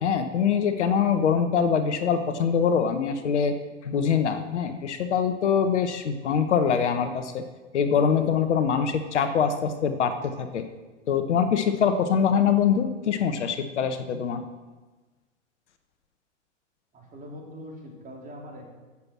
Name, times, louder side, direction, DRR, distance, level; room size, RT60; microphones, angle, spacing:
voice 1, 0.0-3.5 3.8-7.4 7.7-10.6 11.1-14.4, left 7 dB, 65° left, 8 dB, 1.3 m, -24 dB
voice 2, 16.9-18.7, equal, 20° right, 0 dB, 3.8 m, -42 dB
16.0 x 7.3 x 6.1 m, 1.3 s
figure-of-eight pair, 105°, 37 cm